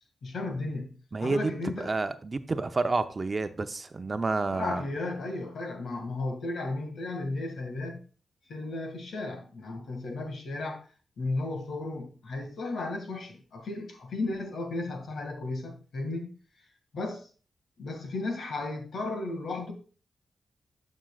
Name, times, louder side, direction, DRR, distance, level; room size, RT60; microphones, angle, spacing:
voice 1, 0.2-0.9 1.2-1.9 4.5-8.0 8.5-10.8 11.2-16.3 16.9-17.3 17.8-19.7, left 2 dB, 80° left, 2.0 m, -34 dB
voice 2, 1.1-1.5 1.8-4.8, right 3 dB, 40° right, 0.7 m, -29 dB
11.5 x 6.3 x 2.4 m
cardioid pair, 60°, 0 cm